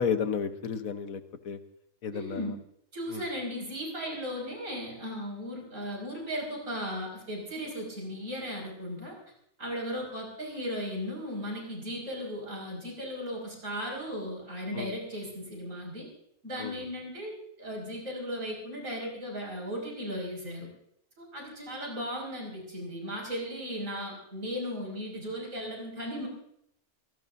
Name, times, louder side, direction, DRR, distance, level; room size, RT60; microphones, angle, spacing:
voice 1, 0.0-1.6 2.0-2.4 3.1-3.2 14.7-14.9 16.6-16.7, left 6 dB, 75° left, 9 dB, 1.5 m, -32 dB
voice 2, 2.1-2.6 2.9-9.1 9.6-16.1 16.4-20.7 21.2-26.3, equal, 65° right, -1 dB, 6.2 m, -36 dB
27.0 x 17.5 x 2.7 m, 0.74 s
omnidirectional pair, 1.4 m